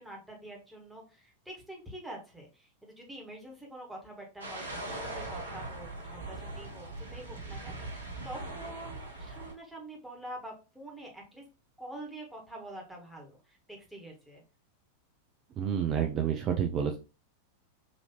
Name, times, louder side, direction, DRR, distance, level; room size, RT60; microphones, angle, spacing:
voice 1, 0.0-7.7 8.2-11.4 11.8-14.4, right 1 dB, 5° right, -1 dB, 1.4 m, -46 dB
sound 1, 4.4-9.5, right 2 dB, 75° right, 1.0 m, -40 dB
voice 2, 15.6-17.0, right 8 dB, 30° right, 5 dB, 0.4 m, -29 dB
4.2 x 2.8 x 2.8 m, 0.31 s
figure-of-eight pair, 90°, 0 cm